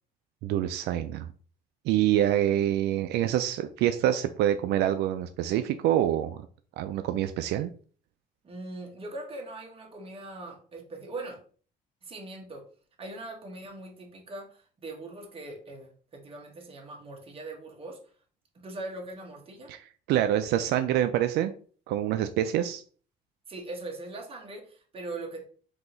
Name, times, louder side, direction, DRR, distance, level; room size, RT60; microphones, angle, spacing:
voice 1, 0.4-1.3 1.9-6.5 6.8-7.7 19.7-19.8 20.1-21.5 21.9-22.8, right 11 dB, 80° right, 8 dB, 0.4 m, -26 dB
voice 2, 8.4-11.4 12.0-12.6 13.0-18.0 18.5-19.7 23.5-25.4, right 2 dB, 35° right, 1 dB, 1.4 m, -41 dB
3.8 x 2.8 x 3.9 m, 0.42 s
cardioid pair, 110°, 17 cm